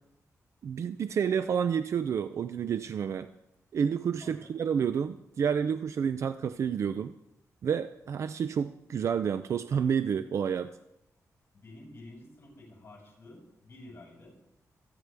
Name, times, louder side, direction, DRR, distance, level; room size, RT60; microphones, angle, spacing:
voice 1, 0.6-3.3 3.7-7.1 7.6-10.7, right 7 dB, 55° right, 11 dB, 0.4 m, -29 dB
voice 2, 11.5-14.4, left 2 dB, 40° left, -3 dB, 6.0 m, -50 dB
26.0 x 9.7 x 3.5 m, 0.86 s
wide cardioid pair, 165°, 6 cm